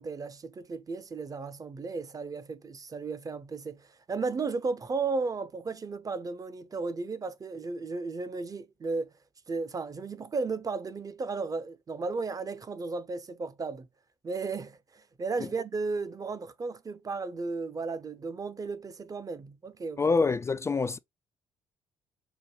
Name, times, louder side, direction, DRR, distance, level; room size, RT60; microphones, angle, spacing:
voice 1, 0.0-9.1 9.5-13.9 14.2-20.0, right 4 dB, 25° right, 0.7 m, -34 dB
voice 2, 20.0-21.0, left 4 dB, 20° left, 0.3 m, -26 dB
5.1 x 2.2 x 3.0 m
figure-of-eight pair, 45°, 13 cm